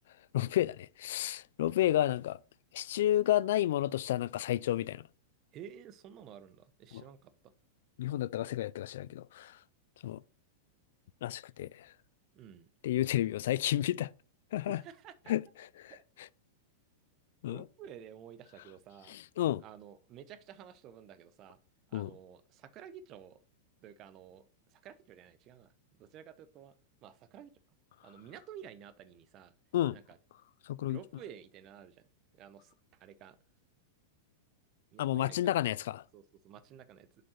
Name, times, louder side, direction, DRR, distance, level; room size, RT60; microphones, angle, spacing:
voice 1, 0.3-2.4 2.7-5.0 6.9-7.0 8.0-9.6 10.0-10.2 11.2-11.9 12.8-14.1 14.5-14.8 15.3-15.4 15.8-15.9 17.4-17.6 19.1-19.6 21.9-22.1 29.7-30.0 30.7-31.0 35.0-36.0, left 13 dB, 70° left, 0.3 m, -31 dB
voice 2, 5.5-7.3 12.3-12.7 14.7-15.3 15.9-16.0 17.5-19.1 19.6-21.6 21.9-23.4 23.8-25.7 26.0-26.7 27.0-27.5 28.0-29.5 29.9-30.2 30.9-32.0 32.3-32.7 33.0-33.4 34.9-35.5 36.1-37.1, right 9 dB, 40° right, 0.8 m, -51 dB
7.5 x 5.3 x 4.3 m
hypercardioid pair, 125°, 0 cm